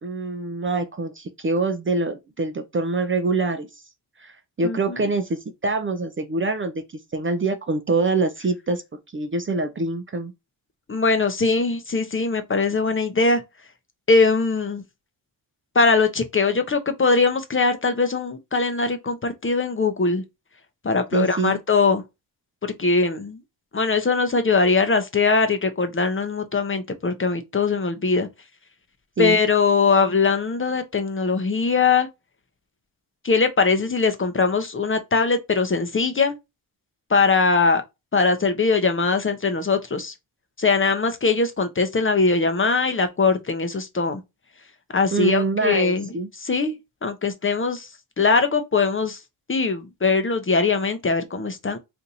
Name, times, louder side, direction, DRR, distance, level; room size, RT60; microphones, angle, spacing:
voice 1, 0.0-3.8 4.2-4.3 4.6-8.8 9.1-10.3 21.1-21.6 29.2-29.4 45.1-46.3, right 3 dB, 30° right, 0.6 m, -25 dB
voice 2, 4.6-5.0 10.9-13.4 14.1-14.8 15.7-20.2 20.8-22.0 22.6-23.4 23.7-28.3 29.2-32.1 33.2-36.4 37.1-37.8 38.1-40.1 40.6-44.2 44.9-46.7 47.0-47.9 48.2-49.2 49.5-51.8, left 4 dB, 30° left, 0.7 m, -21 dB
2.7 x 2.5 x 4.0 m
cardioid pair, 60°, 45 cm